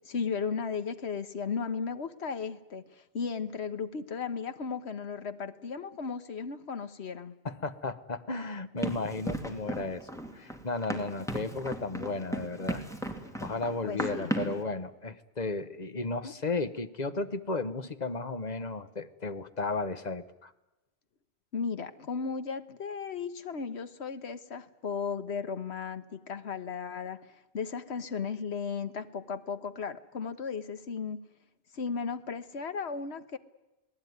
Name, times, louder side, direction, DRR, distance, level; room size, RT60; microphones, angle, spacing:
voice 1, 0.0-7.3 13.8-14.3 21.5-27.2 27.5-31.2 31.7-33.4, left 5 dB, 80° left, 11 dB, 1.4 m, -35 dB
voice 2, 7.4-12.8 13.4-20.5, left 3 dB, 40° left, 11 dB, 1.2 m, -34 dB
Run, 8.8-14.6, right 1 dB, 5° left, 2.5 m, -36 dB
28.5 x 19.0 x 9.5 m, 1.0 s
omnidirectional pair, 1.1 m